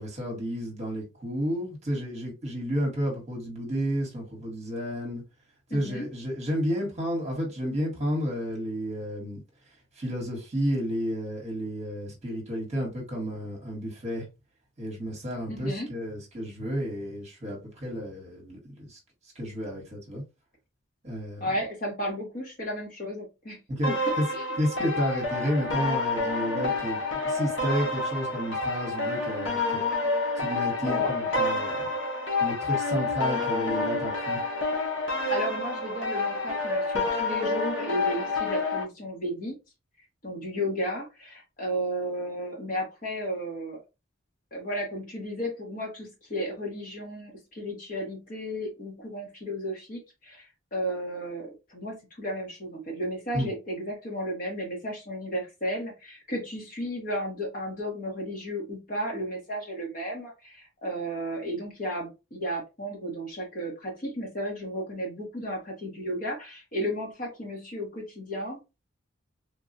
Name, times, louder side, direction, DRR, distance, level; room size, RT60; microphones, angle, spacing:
voice 1, 0.0-5.2 5.7-9.4 10.0-14.3 14.8-19.0 19.3-20.2 21.0-21.4 23.7-24.3 24.6-27.0 27.2-29.8 30.4-31.9 32.4-34.4 53.3-53.5, equal, 35° right, 1.1 m, -31 dB
voice 2, 5.7-6.1 15.5-15.9 21.4-23.6 23.9-24.5 30.8-31.5 35.3-39.5 40.2-43.8 44.5-68.6, equal, 40° left, 1.2 m, -34 dB
sound 1, 23.8-38.8, left 3 dB, 65° left, 0.9 m, -28 dB
3.4 x 2.3 x 2.6 m
head